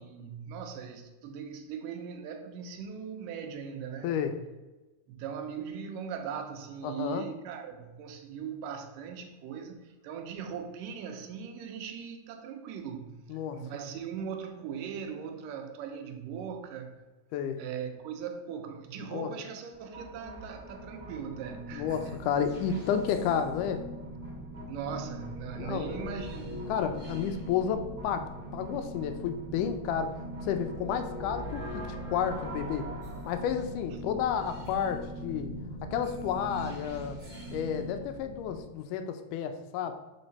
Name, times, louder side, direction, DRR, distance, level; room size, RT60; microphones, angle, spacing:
voice 1, 0.0-4.1 5.1-17.0 17.6-22.2 24.7-26.7, right 7 dB, 85° right, 2.4 m, -39 dB
voice 2, 4.0-4.3 6.8-7.2 13.3-13.6 17.3-17.6 19.1-19.3 21.7-23.9 25.6-26.0 26.7-30.2 30.4-31.8 32.1-32.9 33.3-35.5 35.9-37.2 37.5-39.9, left 8 dB, 80° left, 2.1 m, -31 dB
sound 1, 19.7-38.6, equal, 25° right, 0.9 m, -41 dB
6.6 x 4.7 x 4.1 m
omnidirectional pair, 3.7 m